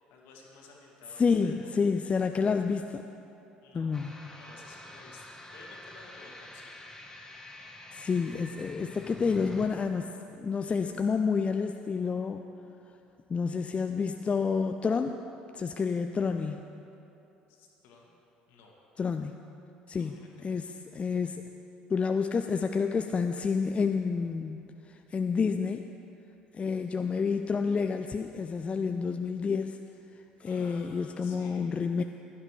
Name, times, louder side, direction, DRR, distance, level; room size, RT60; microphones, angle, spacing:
voice 1, 0.1-1.5 3.6-4.0 4.3-6.7 8.0-8.1 17.5-18.1 18.5-18.8 19.9-20.5 30.5-31.7, left 3 dB, 60° left, -1 dB, 2.0 m, -54 dB
voice 2, 1.2-3.0 3.7-4.2 7.9-12.4 13.3-15.2 15.5-16.7 19.0-19.3 19.9-20.1 20.4-21.4 21.9-24.6 24.9-25.9 26.5-29.8 30.4-32.0, left 5 dB, 25° left, 6 dB, 0.4 m, -29 dB
sound 1, 3.9-9.7, left 1 dB, 10° left, 1.3 m, -47 dB
16.0 x 12.0 x 3.3 m, 2.8 s
figure-of-eight pair, 55°, 5 cm